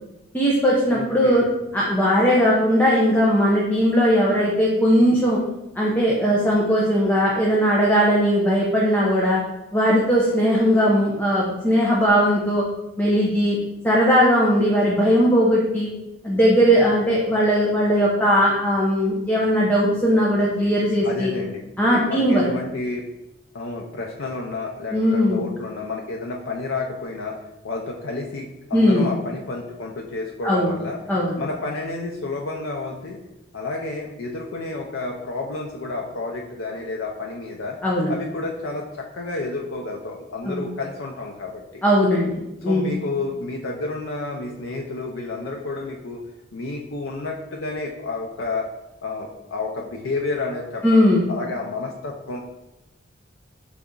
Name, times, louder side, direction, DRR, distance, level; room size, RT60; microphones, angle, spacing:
voice 1, 0.3-1.4 1.7-5.4 5.8-9.4 9.7-12.6 13.0-13.6 13.8-15.9 16.2-21.3 21.8-22.4 24.9-25.4 28.7-29.1 30.4-30.7 31.1-31.4 37.8-38.1 40.4-40.7 41.8-42.9 50.8-51.2, equal, 10° left, -5 dB, 0.6 m, -19 dB
voice 2, 0.9-1.5 21.0-21.6 22.0-23.1 23.5-27.4 27.6-31.0 31.4-33.2 33.5-37.8 38.1-41.8 42.6-46.2 46.5-48.7 49.0-52.4, left 3 dB, 85° left, 0 dB, 0.5 m, -30 dB
4.0 x 3.4 x 3.7 m, 0.93 s
head